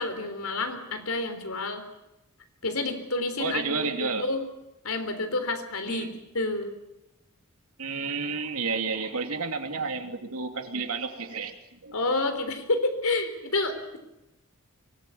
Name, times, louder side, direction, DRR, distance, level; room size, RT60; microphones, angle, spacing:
voice 1, 0.0-1.8 2.6-4.4 4.8-6.7 11.9-14.0, left 2 dB, 80° left, 8 dB, 3.7 m, -29 dB
voice 2, 3.4-4.3 5.9-6.1 7.8-11.5 11.8-11.9, right 4 dB, 85° right, 5 dB, 2.8 m, -31 dB
24.0 x 19.0 x 9.3 m, 0.93 s
head